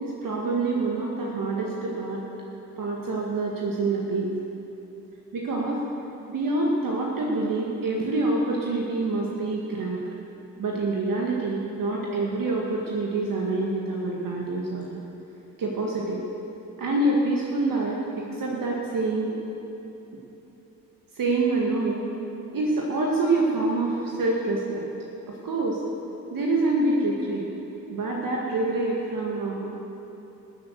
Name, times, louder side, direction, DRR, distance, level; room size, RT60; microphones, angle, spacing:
voice 1, 0.0-2.2 2.8-4.3 5.3-5.8 6.3-10.0 10.6-15.0 15.6-16.2 16.8-19.3 21.2-22.0 22.5-24.8 25.3-25.8 26.3-27.5 27.9-29.7, right 2 dB, 55° right, -2 dB, 2.1 m, -26 dB
14.0 x 8.1 x 8.1 m, 3.0 s
hypercardioid pair, 50°, 40 cm